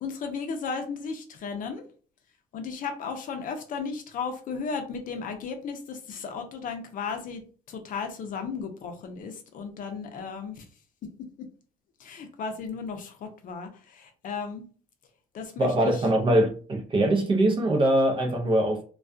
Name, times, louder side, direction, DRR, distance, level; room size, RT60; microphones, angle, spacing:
voice 1, 0.0-1.8 2.5-7.4 7.7-10.7 11.4-11.5 12.0-14.6 15.3-16.0, left 5 dB, 55° left, 0.6 m, -35 dB
voice 2, 15.6-18.8, right 1 dB, 30° right, 0.6 m, -22 dB
2.3 x 2.2 x 2.5 m
cardioid pair, 110°, 17 cm